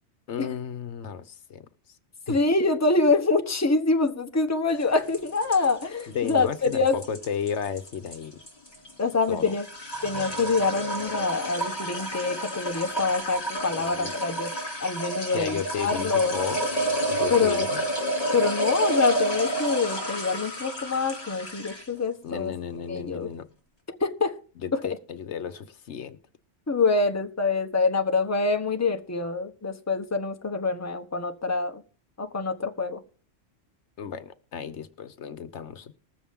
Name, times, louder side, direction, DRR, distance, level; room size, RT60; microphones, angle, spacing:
voice 1, 0.3-1.6 2.3-2.4 6.1-8.4 9.3-9.6 13.8-14.2 15.3-16.7 17.1-17.9 22.2-23.5 24.6-26.2 34.0-35.9, left 7 dB, 75° left, 1.1 m, -33 dB
voice 2, 2.3-7.0 9.0-9.7 10.0-14.5 14.8-16.3 17.3-17.7 18.3-22.5 22.9-23.3 24.0-24.3 26.7-31.8 32.2-33.0, left 3 dB, 15° left, 0.9 m, -25 dB
sound 1, 4.8-22.0, right 1 dB, 35° left, 2.8 m, -30 dB
20.0 x 7.2 x 3.6 m
omnidirectional pair, 1.2 m